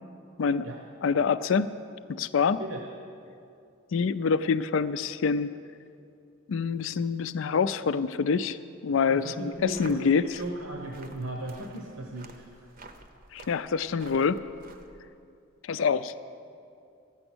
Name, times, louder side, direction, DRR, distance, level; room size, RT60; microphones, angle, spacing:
voice 1, 1.0-1.7 2.1-2.6 3.9-5.5 6.5-8.6 8.8-10.4 13.3-14.4 15.6-16.1, left 5 dB, 65° left, 14 dB, 0.4 m, -26 dB
voice 2, 9.1-12.7, right 1 dB, 85° right, 0 dB, 1.1 m, -37 dB
sound 1, 9.5-15.1, right 3 dB, 45° right, 0.7 m, -51 dB
13.0 x 8.9 x 6.1 m, 2.5 s
head